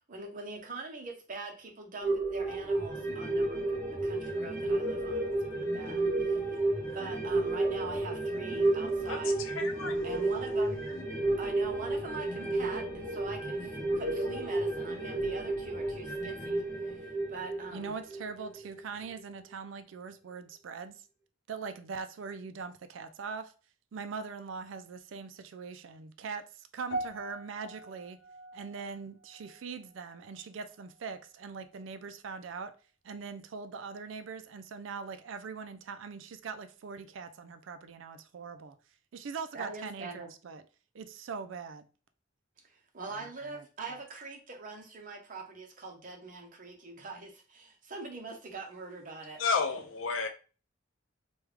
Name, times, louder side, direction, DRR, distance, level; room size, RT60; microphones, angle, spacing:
voice 1, 0.1-6.4 6.9-9.4 10.0-10.9 11.4-18.0 39.5-40.3 42.6-49.4, right 3 dB, 45° right, 0.8 m, -43 dB
sound 1, 2.0-18.8 19.1-19.2, right 2 dB, 10° left, 0.9 m, -32 dB
voice 2, 9.1-10.1 49.4-50.3, left 5 dB, 85° left, 0.6 m, -32 dB
voice 3, 17.7-21.0 21.5-23.5 23.9-28.2 28.5-32.7 33.0-38.8 39.1-40.6 40.9-41.9 43.1-44.0, right 5 dB, 75° right, 0.4 m, -42 dB
sound 2, 26.9-31.3 31.6-31.9 32.6-32.7, right 2 dB, 55° left, 0.8 m, -43 dB
3.4 x 2.3 x 3.2 m
head